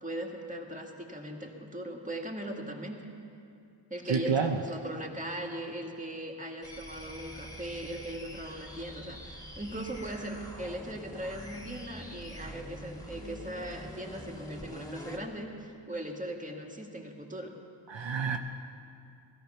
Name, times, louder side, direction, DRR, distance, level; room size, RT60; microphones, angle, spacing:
voice 1, 0.0-3.1 3.9-17.5, right 1 dB, 15° right, 1 dB, 2.1 m, -39 dB
voice 2, 4.1-4.6 17.9-18.4, right 6 dB, 65° right, 4 dB, 0.9 m, -28 dB
sound 1, 6.6-15.3, equal, 10° left, 2.3 m, -45 dB
16.5 x 15.0 x 5.8 m, 2.5 s
wide cardioid pair, 60°, 48 cm